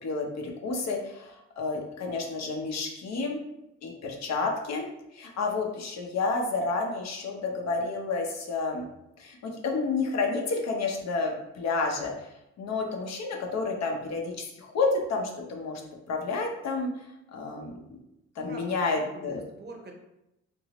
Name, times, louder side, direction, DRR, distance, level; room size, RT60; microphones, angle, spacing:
voice 1, 0.0-3.4 3.8-4.9 5.1-8.8 9.2-12.3 12.6-15.8 16.1-16.9 17.3-17.8 18.4-19.4, left 3 dB, 60° left, 1 dB, 0.7 m, -30 dB
voice 2, 18.4-19.9, right 1 dB, 35° right, 1 dB, 0.7 m, -44 dB
2.9 x 2.6 x 2.9 m, 0.87 s
cardioid pair, 90°, 30 cm